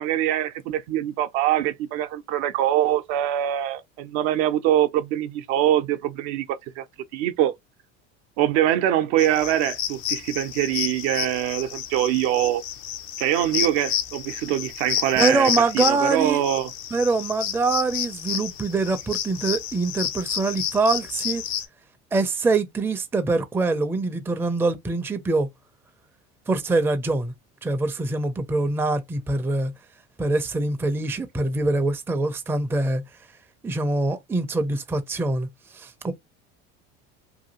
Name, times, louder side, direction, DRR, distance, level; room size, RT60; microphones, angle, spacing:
voice 1, 0.0-6.8 7.1-7.5 8.4-12.6 13.2-16.7, right 12 dB, 70° right, 0.6 m, -23 dB
sound 1, 9.2-21.7, left 10 dB, 85° left, 0.7 m, -30 dB
voice 2, 15.2-16.4 16.9-21.4 22.1-25.5 26.5-27.3 27.6-29.7 30.2-33.0 33.6-35.5 35.7-36.1, right 3 dB, 5° right, 0.4 m, -24 dB
2.8 x 2.4 x 2.8 m
supercardioid pair, 90°, 37 cm